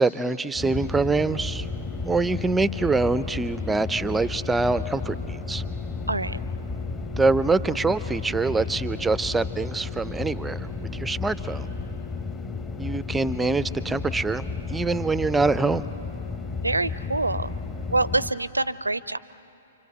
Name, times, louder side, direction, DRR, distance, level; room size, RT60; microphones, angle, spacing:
voice 1, 0.0-1.7 2.0-5.6 7.2-11.7 12.8-14.4 14.7-15.8, right 3 dB, 10° right, 16 dB, 0.6 m, -24 dB
sound 1, 0.6-18.3, left 4 dB, 15° left, 1.3 m, -33 dB
voice 2, 6.1-6.4 16.6-17.5 17.9-19.2, right 2 dB, 80° right, 18 dB, 0.6 m, -25 dB
29.0 x 25.5 x 8.0 m, 2.9 s
figure-of-eight pair, 115°, 0 cm